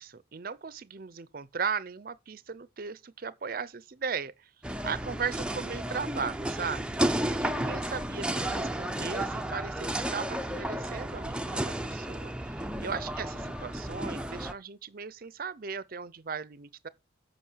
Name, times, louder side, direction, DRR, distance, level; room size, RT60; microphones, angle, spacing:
voice 1, 0.0-4.5 4.8-16.9, right 5 dB, 50° right, 0.6 m, -37 dB
sound 1, 4.6-14.5, right 1 dB, 5° right, 0.5 m, -32 dB
8.5 x 5.4 x 7.1 m
head